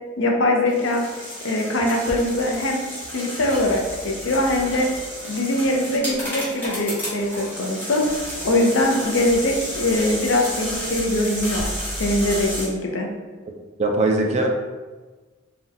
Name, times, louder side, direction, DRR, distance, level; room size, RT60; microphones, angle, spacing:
voice 1, 0.2-1.0 1.4-2.8 3.1-4.9 5.2-8.0 8.4-11.6 12.0-13.1, left 1 dB, 65° left, 1 dB, 0.5 m, -22 dB
sound 1, 0.7-12.7, equal, 10° left, 0.9 m, -32 dB
voice 2, 13.8-14.5, right 2 dB, 30° right, 2 dB, 0.3 m, -20 dB
3.7 x 2.2 x 2.6 m, 1.3 s
head